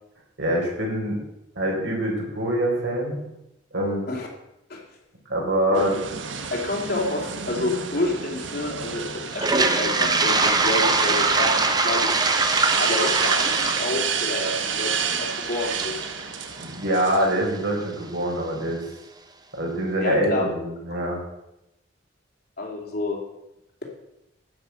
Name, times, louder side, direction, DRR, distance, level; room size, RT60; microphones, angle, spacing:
voice 1, 0.4-1.2 1.6-3.3 3.7-4.1 5.3-6.0 6.4-6.5 16.6-18.8 19.5-21.2, right 1 dB, 70° right, -1 dB, 4.3 m, -25 dB
sound 1, 5.7-17.7, right 6 dB, 85° right, 1.2 m, -30 dB
voice 2, 6.5-12.1 12.8-15.9 20.0-20.5 20.9-21.0 22.6-23.2, left 2 dB, 55° left, -1 dB, 3.1 m, -29 dB
Toilet flush, 9.3-17.2, right 3 dB, 20° right, 1.0 m, -23 dB
12.5 x 9.0 x 5.9 m, 0.88 s
head